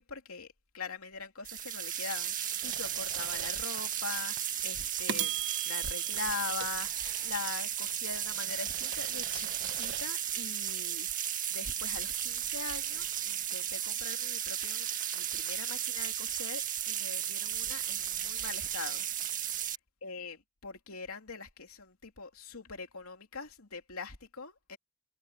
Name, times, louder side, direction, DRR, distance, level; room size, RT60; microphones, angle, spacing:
voice 1, 0.0-14.9 15.1-19.1 19.4-19.7 20.0-24.8, left 4 dB, 85° left, 2.9 m, -42 dB
sound 1, 1.4-19.7, right 10 dB, 40° right, 1.7 m, -34 dB
sound 2, 2.6-3.9 4.4-4.5 5.1-7.4 7.9-10.1, right 10 dB, 60° right, 1.1 m, -41 dB
head